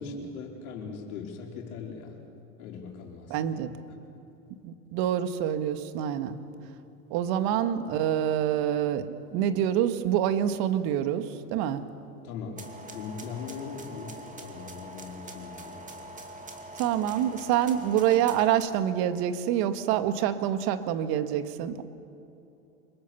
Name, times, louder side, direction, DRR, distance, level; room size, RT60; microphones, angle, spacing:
voice 1, 0.0-2.2 2.6-3.5 3.9-4.0 12.2-12.6 12.9-15.9, left 5 dB, 80° left, 1 dB, 4.7 m, -40 dB
voice 2, 3.3-3.7 4.6-6.4 7.1-11.8 16.8-21.8, right 10 dB, 60° right, 9 dB, 1.8 m, -26 dB
sound 1, 12.6-18.6, right 1 dB, 20° right, 2.6 m, -44 dB
26.0 x 22.5 x 7.0 m, 2.8 s
supercardioid pair, 115°, 42 cm